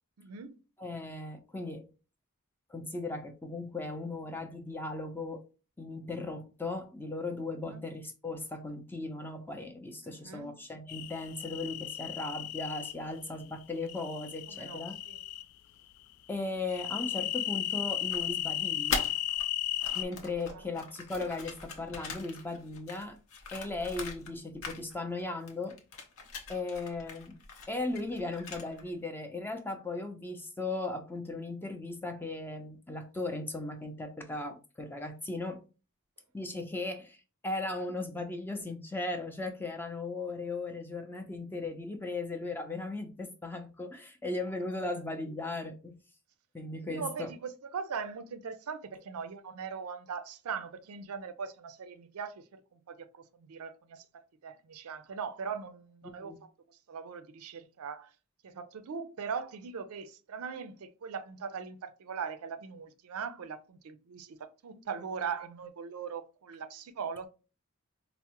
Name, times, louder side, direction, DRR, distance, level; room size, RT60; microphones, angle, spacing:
voice 1, 0.2-0.6 7.6-7.9 10.0-10.6 14.5-15.2 20.5-20.6 44.8-44.9 46.8-54.0 54.4-56.3 56.9-58.1 58.4-67.3, right 6 dB, 80° right, 0.4 m, -40 dB
voice 2, 0.8-1.9 2.7-5.4 5.8-15.0 16.3-19.1 19.9-23.2 23.5-25.8 26.5-35.6 36.3-46.0 46.5-47.3 56.2-56.4, left 2 dB, 10° left, 0.5 m, -37 dB
sound 1, 10.9-12.9 13.9-15.4 16.7-20.0, left 12 dB, 85° left, 0.3 m, -35 dB
sound 2, 18.1-19.4 19.7-24.3 24.6-25.2 25.5-28.9, left 4 dB, 65° left, 0.7 m, -41 dB
4.4 x 2.0 x 2.8 m
head